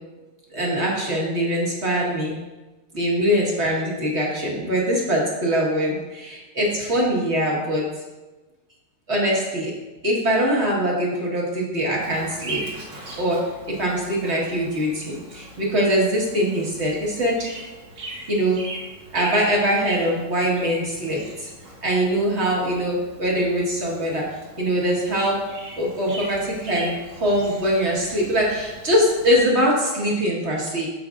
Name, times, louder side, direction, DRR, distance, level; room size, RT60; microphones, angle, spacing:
voice 1, 0.5-2.4 2.9-7.8 9.1-9.7 10.0-12.6 13.1-13.4 13.7-17.5 18.3-18.6 19.1-21.5 21.8-24.2 24.6-25.4 25.8-30.9, equal, 40° right, -3 dB, 1.7 m, -22 dB
Bird vocalization bird call bird song, 12.0-29.4, right 2 dB, 75° right, 2.3 m, -40 dB
9.1 x 7.0 x 2.5 m, 1.1 s
omnidirectional pair, 2.0 m